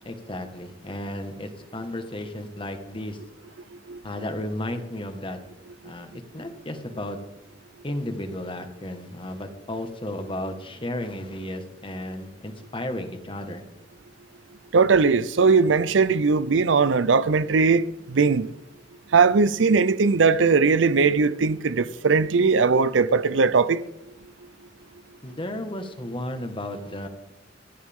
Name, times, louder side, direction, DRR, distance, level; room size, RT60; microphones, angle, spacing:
voice 1, 0.0-3.2 4.0-5.4 5.8-7.2 7.8-13.6 25.2-27.1, left 1 dB, 30° left, 1.6 m, -33 dB
voice 2, 14.7-17.8 18.1-18.5 19.1-23.8, right 4 dB, 85° right, 0.6 m, -19 dB
27.5 x 9.5 x 3.6 m
head